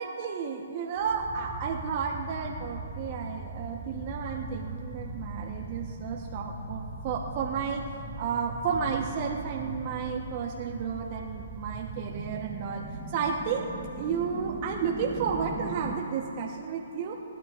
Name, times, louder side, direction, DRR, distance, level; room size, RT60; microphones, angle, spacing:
voice 1, 0.0-7.8 8.2-13.7 13.9-17.1, right 6 dB, 40° right, 0 dB, 1.0 m, -32 dB
sound 1, 1.0-16.0, right 2 dB, 10° right, 1.0 m, -40 dB
25.5 x 11.5 x 2.5 m, 2.9 s
hypercardioid pair, 140°, 0 cm